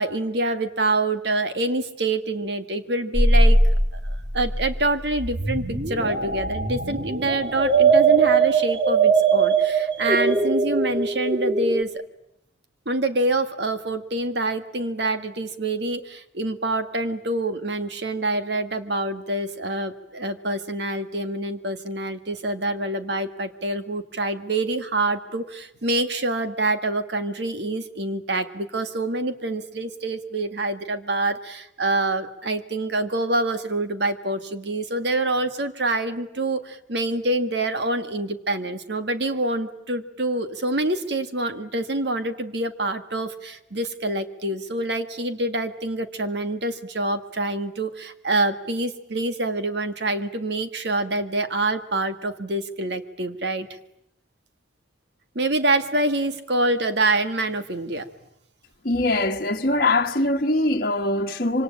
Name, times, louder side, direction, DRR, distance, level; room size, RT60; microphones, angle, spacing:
voice 1, 0.0-3.6 3.9-12.0 12.9-53.7 55.4-58.1, right 2 dB, 65° right, 1.9 m, -26 dB
sound 1, 3.1-11.8, right 4 dB, 40° right, 1.9 m, -20 dB
voice 2, 58.8-61.6, left 2 dB, 50° left, 1.3 m, -22 dB
26.5 x 25.5 x 8.8 m
head